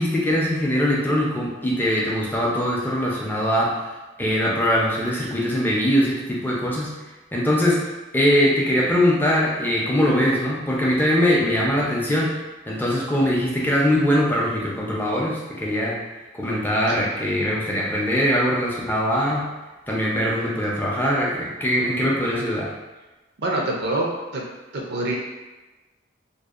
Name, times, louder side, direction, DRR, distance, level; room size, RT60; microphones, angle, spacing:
voice 1, 0.0-3.7 4.2-6.9 7.3-7.8 8.1-12.3 12.7-16.0 16.4-19.5 19.9-22.7, equal, 10° left, -4 dB, 0.4 m, -22 dB
voice 2, 23.4-24.4 24.7-25.2, right 2 dB, 60° right, -1 dB, 0.4 m, -25 dB
2.6 x 2.0 x 2.4 m, 1.1 s
head